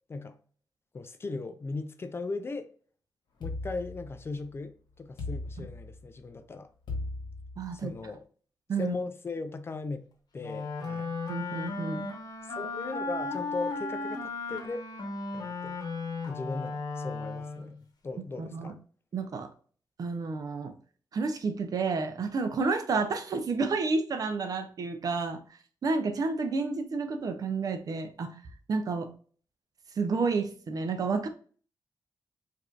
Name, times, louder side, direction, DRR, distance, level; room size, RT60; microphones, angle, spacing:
voice 1, 0.9-2.7 3.4-6.7 7.7-8.2 8.8-10.0 10.3-11.2 12.6-14.8 15.3-15.8 16.3-17.8 18.0-18.8, left 3 dB, 35° left, 0.4 m, -38 dB
sound 1, 3.4-4.5 5.2-6.2 6.9-8.0, left 2 dB, 80° left, 1.3 m, -38 dB
voice 2, 7.6-7.9 8.7-9.0 11.3-12.1 18.4-18.7 19.1-19.5 20.0-20.7 21.1-28.4 28.7-29.1 30.0-31.3, right 4 dB, 55° right, 0.6 m, -30 dB
Wind instrument woodwind instrument, 10.4-17.8, left 3 dB, 65° left, 1.0 m, -35 dB
4.7 x 2.7 x 2.4 m
wide cardioid pair, 125°, 8 cm